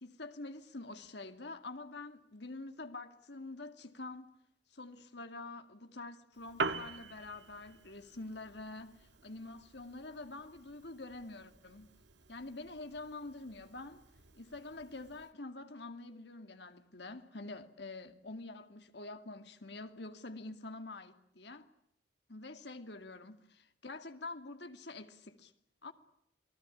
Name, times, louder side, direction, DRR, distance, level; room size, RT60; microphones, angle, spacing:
voice 1, 0.0-4.3 4.7-11.9 12.3-14.0 14.3-21.7 22.3-25.5 25.8-25.9, left 2 dB, 60° left, 2.5 m, -46 dB
Piano, 6.3-15.3, right 4 dB, 65° right, 1.7 m, -45 dB
29.0 x 20.0 x 10.0 m
head